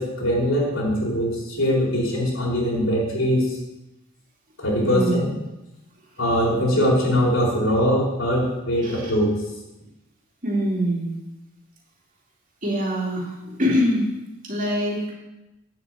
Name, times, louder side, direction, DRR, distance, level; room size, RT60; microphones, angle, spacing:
voice 1, 0.0-3.6 4.6-5.3 6.2-9.3, equal, 65° left, -3 dB, 4.0 m, -22 dB
voice 2, 4.8-5.2 8.8-9.1 10.4-11.1 12.6-14.1 14.4-15.1, equal, 35° right, -3 dB, 2.8 m, -24 dB
9.2 x 8.1 x 7.5 m, 0.97 s
head